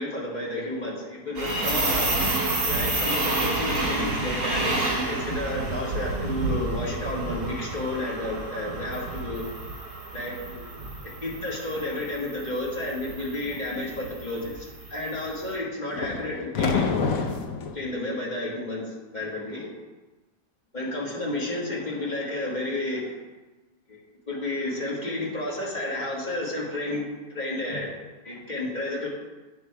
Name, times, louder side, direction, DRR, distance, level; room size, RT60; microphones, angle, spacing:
voice 1, 0.0-2.1 2.7-9.4 10.1-10.7 11.0-16.9 17.7-18.8 19.1-19.7 20.7-23.1 23.9-24.0 24.3-27.0 27.3-27.9 28.2-29.1, left 2 dB, 25° left, -4 dB, 1.7 m, -31 dB
sound 1, 1.3-15.4, right 2 dB, 60° right, 2.5 m, -30 dB
sound 2, 15.9-17.8, left 5 dB, 65° left, 1.0 m, -27 dB
8.7 x 5.1 x 4.6 m, 1.2 s
omnidirectional pair, 1.9 m